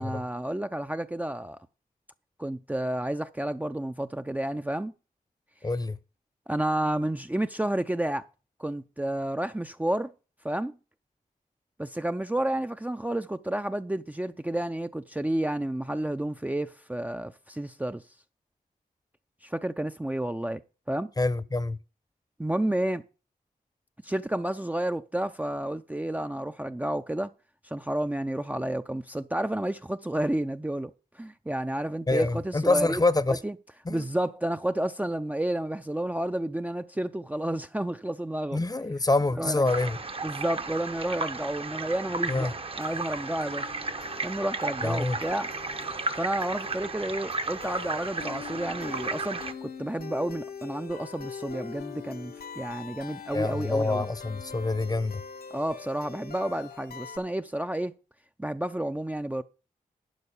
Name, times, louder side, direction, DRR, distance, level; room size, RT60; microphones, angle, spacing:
voice 1, 0.0-1.6 2.4-4.9 6.5-8.3 8.6-10.1 10.4-10.7 11.8-18.0 19.4-20.6 20.9-21.1 22.4-23.0 24.0-27.3 27.6-33.0 33.3-33.5 33.9-38.6 39.4-39.7 40.2-42.5 42.8-43.7 44.2-45.5 46.2-54.0 55.5-58.0 58.4-59.4, right 1 dB, 10° right, 0.5 m, -31 dB
voice 2, 5.6-6.0 21.2-21.8 32.1-33.4 33.9-34.0 38.5-40.0 42.3-42.5 44.8-45.2 53.3-55.2, left 2 dB, 25° left, 0.8 m, -26 dB
sound 1, 39.6-49.5, right 3 dB, 40° right, 1.0 m, -34 dB
sound 2, 42.8-57.2, left 6 dB, 85° left, 1.1 m, -43 dB
11.5 x 4.7 x 8.3 m
cardioid pair, 60°, 15 cm